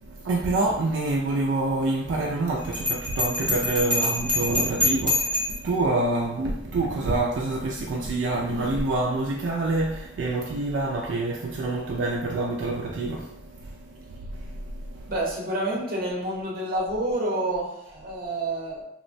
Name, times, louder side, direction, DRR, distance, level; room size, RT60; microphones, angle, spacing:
voice 1, 0.0-15.1, right 2 dB, 80° right, 0.3 m, -27 dB
Bell, 2.7-5.7, left 2 dB, 5° left, 0.6 m, -25 dB
voice 2, 15.1-18.8, right 1 dB, 50° right, 0.7 m, -28 dB
2.9 x 2.1 x 2.5 m
head